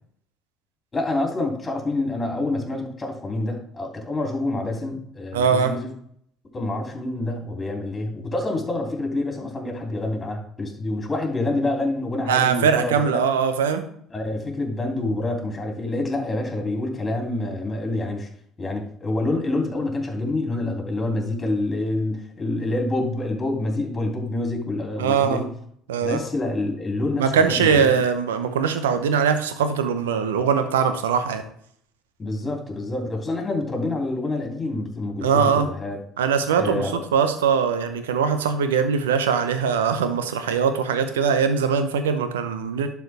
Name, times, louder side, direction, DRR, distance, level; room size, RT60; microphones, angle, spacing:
voice 1, 0.9-5.9 6.5-13.2 14.1-18.3 18.6-25.5 26.0-28.0 32.2-36.0 36.6-37.0, left 2 dB, 25° left, 1 dB, 2.8 m, -27 dB
voice 2, 5.3-5.8 12.3-13.8 25.0-25.4 25.9-26.2 27.2-31.4 35.2-35.7 36.2-42.9, right 6 dB, 80° right, 9 dB, 0.8 m, -21 dB
11.5 x 4.7 x 3.4 m, 0.65 s
hypercardioid pair, 60°, 0 cm